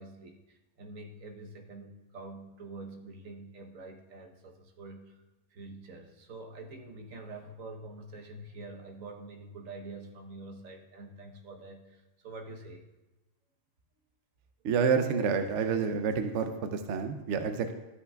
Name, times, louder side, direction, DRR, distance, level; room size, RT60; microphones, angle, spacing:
voice 1, 0.0-5.2 5.5-12.8, right 2 dB, 90° right, 3 dB, 1.4 m, -46 dB
voice 2, 14.6-17.7, right 6 dB, 70° right, 7 dB, 0.9 m, -28 dB
13.0 x 8.0 x 2.3 m, 1.1 s
omnidirectional pair, 1.3 m